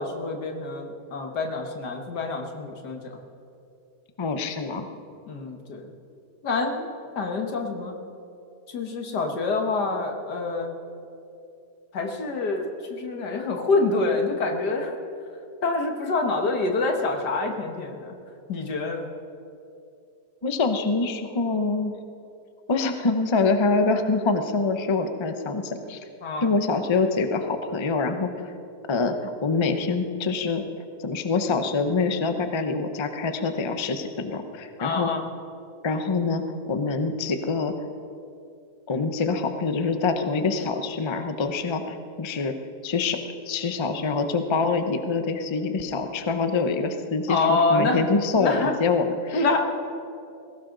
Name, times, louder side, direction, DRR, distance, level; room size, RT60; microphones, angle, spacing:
voice 1, 0.0-3.2 5.3-5.9 6.4-6.9 7.2-7.9 8.7-10.8 11.9-14.9 15.6-18.2 18.5-19.1 26.2-26.5 34.8-35.2 47.3-48.1 48.4-48.7 49.3-49.6, left 3 dB, 80° left, 3 dB, 2.1 m, -26 dB
voice 2, 4.2-4.9 20.4-21.9 22.7-26.0 26.4-28.5 28.9-30.6 31.0-35.1 35.8-37.9 38.9-42.5 42.8-43.2 43.5-49.6, left 4 dB, 30° left, 7 dB, 0.5 m, -25 dB
20.5 x 17.0 x 3.9 m, 2.6 s
omnidirectional pair, 1.7 m